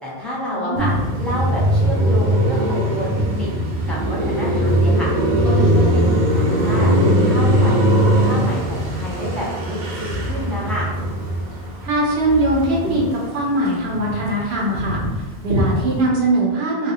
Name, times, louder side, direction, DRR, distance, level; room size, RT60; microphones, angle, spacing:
voice 1, 0.0-3.1 3.3-3.5 3.9-5.1 5.4-6.9 7.2-10.9, equal, ahead, -7 dB, 0.7 m, -29 dB
voice 2, 0.5-0.9 11.8-15.0 15.4-16.9, right 1 dB, 80° right, -3 dB, 0.9 m, -21 dB
Car passing by, 0.8-13.2 13.6-16.1, equal, 55° right, 0.7 m, -20 dB
sound 1, 4.7-13.4, left 1 dB, 60° left, 0.6 m, -34 dB
2.4 x 2.3 x 3.5 m, 1.2 s
omnidirectional pair, 1.0 m